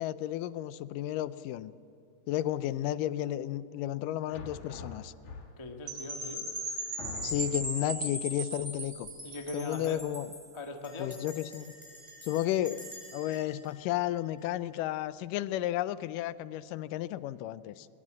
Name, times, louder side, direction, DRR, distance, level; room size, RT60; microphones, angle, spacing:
voice 1, 0.0-1.7 2.3-5.1 7.2-9.1 9.5-10.3 11.0-11.7 12.2-17.9, left 13 dB, 85° left, 15 dB, 2.3 m, -33 dB
sound 1, 4.3-5.8 6.5-6.6 7.0-7.8, left 4 dB, 70° left, 3.3 m, -44 dB
voice 2, 5.6-6.4 9.2-10.0 10.5-11.2, left 2 dB, 25° left, 3 dB, 0.6 m, -40 dB
Percussion / Wind chime, 5.9-10.6, right 1 dB, 30° right, 4.5 m, -38 dB
Bell, 8.7-9.1 9.3-9.4 9.7-10.0 10.8-14.9, left 1 dB, 10° right, 7.1 m, -51 dB
21.0 x 19.5 x 7.6 m, 2.8 s
omnidirectional pair, 3.7 m